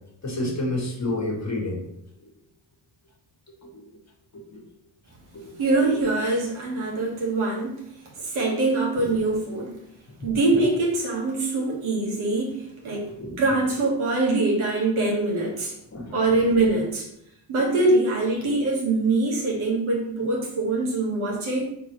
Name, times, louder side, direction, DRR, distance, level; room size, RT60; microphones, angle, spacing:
voice 1, 0.2-1.8 2.2-2.3 3.5-3.9 4.3-4.6 5.3-5.6 5.9-6.0 8.9-9.1 12.9-13.4 15.9-16.4, left 2 dB, 35° left, -1 dB, 1.5 m, -31 dB
voice 2, 5.6-7.8 8.2-9.8 10.2-13.1 13.4-15.7 16.1-17.1 17.5-21.6, right 2 dB, 75° right, -3 dB, 1.6 m, -23 dB
3.9 x 3.5 x 3.1 m, 0.76 s
supercardioid pair, 65°, 50 cm